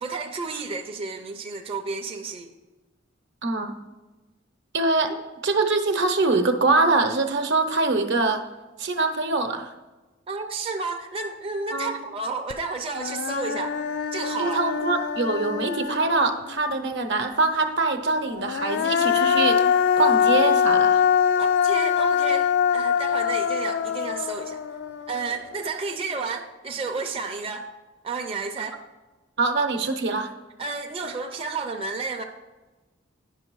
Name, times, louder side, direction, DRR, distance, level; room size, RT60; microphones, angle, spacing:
voice 1, 0.0-2.5 5.1-5.2 10.3-13.8 14.1-14.6 21.4-24.6 25.1-27.7 28.0-28.8 30.6-32.2, right 4 dB, 30° right, 2 dB, 0.5 m, -31 dB
voice 2, 3.4-3.7 4.7-5.1 5.4-8.4 8.8-9.7 11.7-12.0 14.4-19.6 20.0-21.0 29.4-30.3, right 3 dB, 65° right, 7 dB, 0.9 m, -23 dB
Human voice, 12.5-12.6 12.9-16.6 18.3-25.5, left 7 dB, 60° left, 0.4 m, -23 dB
9.8 x 6.0 x 4.6 m, 1.2 s
head